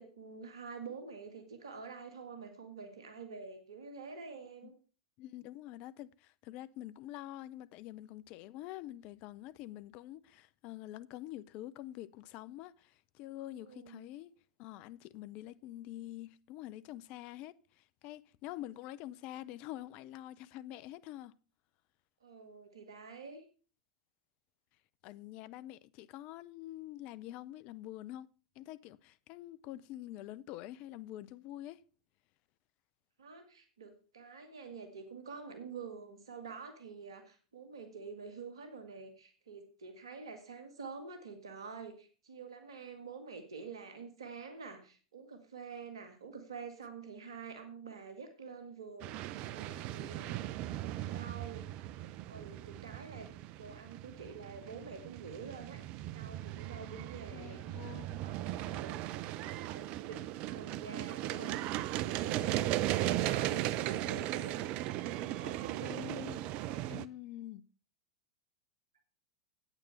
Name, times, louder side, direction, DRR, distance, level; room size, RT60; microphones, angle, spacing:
voice 1, 0.0-4.7 13.6-14.1 22.2-23.4 33.2-50.4 50.8-51.7 51.9-55.8 56.1-57.8 58.2-59.0 59.4-60.2 60.5-61.5 62.0-64.7 65.1-66.8, right 5 dB, 75° right, 1.8 m, -48 dB
voice 2, 5.2-21.4 25.0-28.3 28.6-31.8 56.8-57.0 57.3-58.2 65.8-66.5 66.9-67.6, left 14 dB, 45° left, 0.6 m, -46 dB
sound 1, 49.0-67.0, right 14 dB, 45° right, 0.5 m, -37 dB
8.9 x 8.8 x 5.6 m
hypercardioid pair, 90°, 3 cm